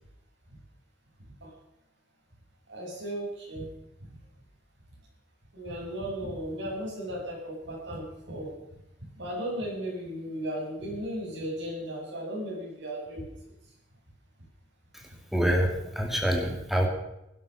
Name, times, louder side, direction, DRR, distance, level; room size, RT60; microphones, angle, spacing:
voice 1, 2.7-3.7 5.5-8.6 9.2-13.3, equal, 75° right, -2 dB, 7.7 m, -35 dB
voice 2, 14.9-16.9, equal, ahead, 1 dB, 2.5 m, -27 dB
17.0 x 11.5 x 6.9 m, 0.88 s
head